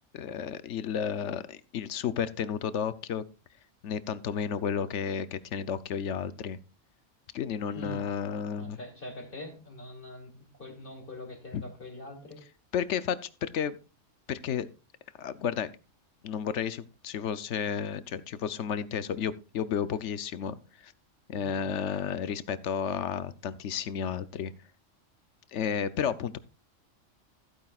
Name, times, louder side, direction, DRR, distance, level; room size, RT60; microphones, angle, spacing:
voice 1, 0.1-3.2 3.8-6.6 7.3-8.8 11.5-11.6 12.7-13.8 14.3-14.7 15.2-15.7 16.2-20.6 20.8-20.9 21.3-24.5 25.5-26.4, left 7 dB, 70° left, 14 dB, 1.0 m, -32 dB
voice 2, 8.6-12.4, left 1 dB, 45° left, 1 dB, 2.9 m, -43 dB
15.0 x 9.0 x 2.4 m, 0.32 s
omnidirectional pair, 1.3 m